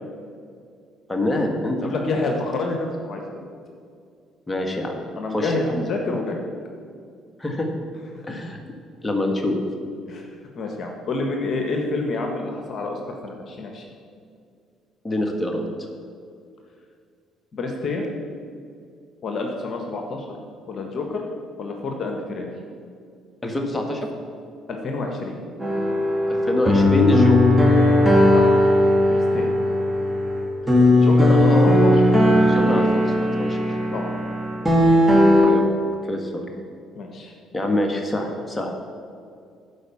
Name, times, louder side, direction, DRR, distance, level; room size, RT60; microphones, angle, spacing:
voice 1, 1.1-1.9 4.5-4.9 5.3-5.8 7.4-7.7 8.2-8.6 9.0-9.6 15.0-15.9 23.4-24.1 26.3-27.4 31.3-31.7 32.4-33.8 35.4-35.6 36.0-36.5 37.5-38.7, left 1 dB, 15° left, 2 dB, 1.8 m, -25 dB
voice 2, 1.8-3.2 5.2-6.4 10.1-10.3 10.5-13.8 17.5-18.0 19.2-20.2 20.6-21.2 21.6-22.5 24.7-25.4 28.3-28.4 29.1-29.5 31.0-31.9 33.9-34.1 36.9-37.3, left 3 dB, 50° left, 2 dB, 1.4 m, -28 dB
sound 1, 25.6-35.5, left 1 dB, 10° right, 2.2 m, -17 dB
11.5 x 5.1 x 7.0 m, 2.3 s
hypercardioid pair, 60°, 0 cm